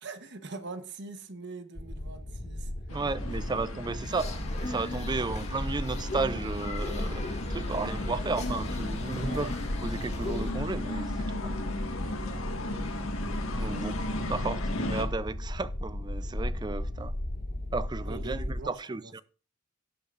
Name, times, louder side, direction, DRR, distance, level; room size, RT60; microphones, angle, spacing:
voice 1, 0.0-2.7 4.1-4.2 9.3-9.5 13.7-13.9 18.0-19.2, right 3 dB, 55° right, 1.1 m, -43 dB
sound 1, 1.8-18.6, left 1 dB, 55° left, 1.8 m, -35 dB
sound 2, 2.9-15.0, left 2 dB, 75° left, 1.7 m, -37 dB
voice 2, 2.9-9.5 9.8-11.5 13.6-14.0 14.3-17.2 17.7-19.2, right 3 dB, 20° right, 0.4 m, -34 dB
sound 3, 4.2-10.5, left 2 dB, 30° left, 2.2 m, -38 dB
17.0 x 8.6 x 2.5 m
head